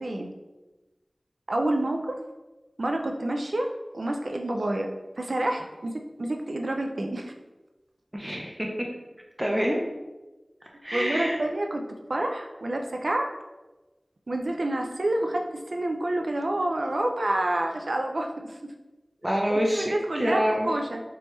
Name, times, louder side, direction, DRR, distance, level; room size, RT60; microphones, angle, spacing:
voice 1, 0.0-0.3 1.5-2.2 2.8-7.3 10.9-11.8 12.1-13.3 14.3-18.7 19.8-21.0, right 1 dB, 80° right, 3 dB, 0.4 m, -28 dB
voice 2, 8.1-8.7 9.4-9.8 10.8-11.4 19.2-19.9 20.2-20.7, equal, 20° right, 0 dB, 0.6 m, -26 dB
3.3 x 3.0 x 3.1 m, 1.1 s
wide cardioid pair, 45°, 0 cm